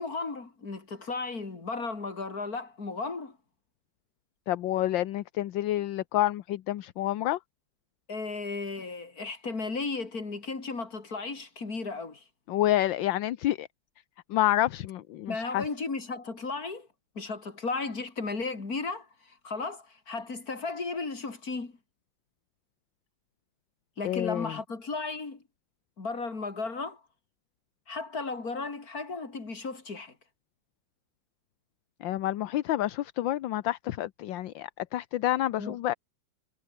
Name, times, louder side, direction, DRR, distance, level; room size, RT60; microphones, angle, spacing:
voice 1, 0.0-3.4 8.1-12.2 15.3-16.9 17.2-21.7 24.0-25.4 26.0-27.0 27.9-30.1 35.6-35.8, left 3 dB, 50° left, 4.1 m, -35 dB
voice 2, 4.5-7.4 12.5-13.7 14.3-15.6 24.0-24.6 32.0-35.9, left 14 dB, 80° left, 1.5 m, -28 dB
omnidirectional pair, 2.0 m